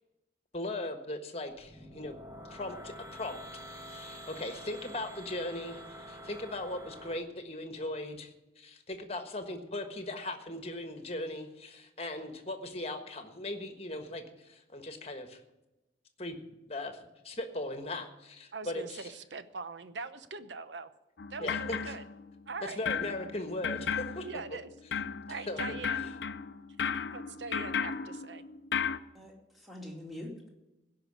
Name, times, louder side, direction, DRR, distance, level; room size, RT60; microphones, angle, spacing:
voice 1, 0.5-2.1 2.5-3.4 3.7-15.4 16.2-16.4 16.7-17.0 17.2-19.1 21.4-21.9 22.6-24.2 25.5-25.6, left 1 dB, 35° left, 7 dB, 1.4 m, -38 dB
sound 1, 1.5-7.2, equal, 20° right, 1.3 m, -47 dB
voice 2, 18.5-20.9 21.3-22.0 22.5-22.8 24.2-24.7 25.3-26.1 27.1-28.4, right 4 dB, 80° right, 12 dB, 0.8 m, -42 dB
sound 2, 21.2-22.5 22.9-29.0, left 6 dB, 70° left, 0.6 m, -35 dB
voice 3, 29.1-30.5, left 1 dB, ahead, -1 dB, 2.5 m, -44 dB
16.0 x 5.7 x 9.8 m, 0.99 s
head